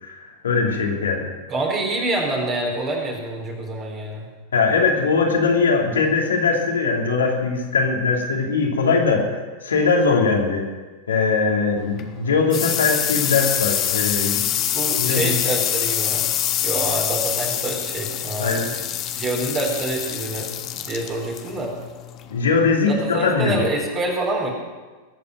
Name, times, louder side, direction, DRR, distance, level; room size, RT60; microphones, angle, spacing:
voice 1, 0.0-1.3 4.5-10.6 11.1-14.4 15.0-15.3 18.4-18.7 22.3-23.6, left 4 dB, 70° left, 0 dB, 2.9 m, -21 dB
voice 2, 1.5-4.3 14.7-16.3 16.6-18.9 19.1-21.7 22.9-24.5, right 2 dB, 30° right, -1 dB, 4.0 m, -26 dB
sound 1, 11.8-23.1, left 11 dB, 35° left, 1.3 m, -25 dB
20.0 x 8.7 x 7.8 m, 1.3 s
figure-of-eight pair, 90°, 0 cm